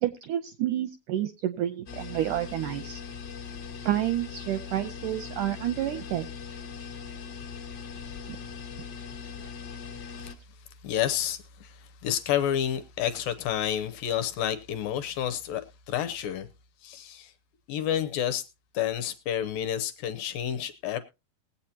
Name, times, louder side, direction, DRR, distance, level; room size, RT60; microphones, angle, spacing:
voice 1, 0.0-3.0 3.8-6.3 8.3-8.4, right 13 dB, 80° right, 1.8 m, -29 dB
sound 1, 1.9-10.3, left 6 dB, 45° left, 1.3 m, -40 dB
voice 2, 10.8-16.5 16.8-17.3 17.7-18.5 18.7-21.0, left 10 dB, 75° left, 2.2 m, -30 dB
20.5 x 8.3 x 2.8 m
omnidirectional pair, 4.4 m